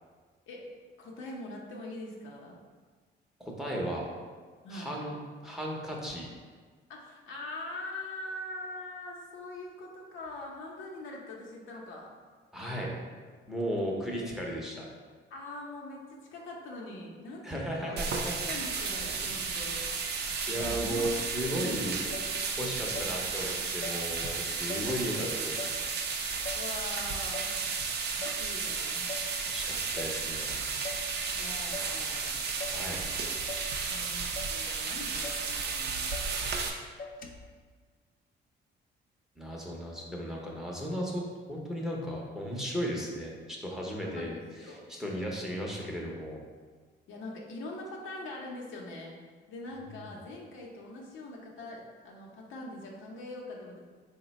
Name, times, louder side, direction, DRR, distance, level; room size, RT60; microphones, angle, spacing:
voice 1, 1.0-2.6 4.6-4.9 6.9-12.1 15.3-19.8 20.5-21.0 21.4-23.1 24.8-25.6 26.6-27.5 28.1-29.1 31.3-32.4 33.8-36.1 44.0-44.9 47.1-49.2 49.5-53.8, left 2 dB, 75° left, -2 dB, 0.7 m, -43 dB
voice 2, 3.4-4.1 4.7-5.2 5.4-6.3 12.5-13.0 13.5-14.9 17.4-18.5 19.4-19.7 20.5-22.0 22.6-25.1 25.8-25.9 29.5-30.7 32.7-33.0 39.4-41.2 41.5-44.3 44.7-46.4 50.0-50.1, equal, ahead, -2 dB, 0.7 m, -35 dB
sound 1, 18.0-36.7, right 5 dB, 55° right, 0.5 m, -33 dB
Motor vehicle (road), 20.6-21.2 21.8-21.9 22.1-23.2 23.5-24.1 24.4-24.9 25.2-26.7 27.0-27.6 27.9-28.5 28.7-29.3 29.6-30.2 30.5-31.1 31.4-32.0 32.3-32.8 33.1-33.7 34.0-34.6 34.9-35.0 35.2-35.5 35.8-36.3 36.6-36.7 37.0-37.5, left 2 dB, 45° left, 0.5 m, -43 dB
3.9 x 2.2 x 4.0 m, 1.5 s
cardioid pair, 90°, 20 cm